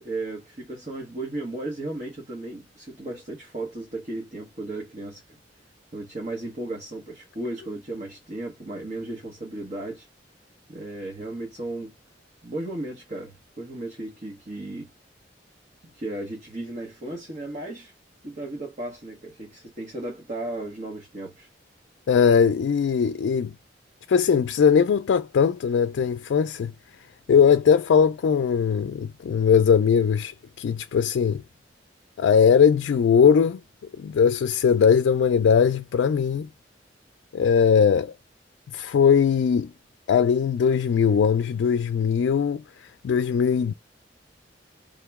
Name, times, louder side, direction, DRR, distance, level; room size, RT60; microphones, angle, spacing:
voice 1, 0.0-5.4 5.9-10.1 10.7-11.9 12.4-14.9 15.8-17.9 18.2-21.5, right 2 dB, 45° right, 1.3 m, -35 dB
voice 2, 22.1-23.5 24.1-26.7 27.3-31.4 32.2-33.6 34.0-36.5 37.3-38.1 38.7-39.7 40.1-43.7, left 7 dB, 85° left, 0.3 m, -20 dB
3.7 x 2.9 x 3.5 m
head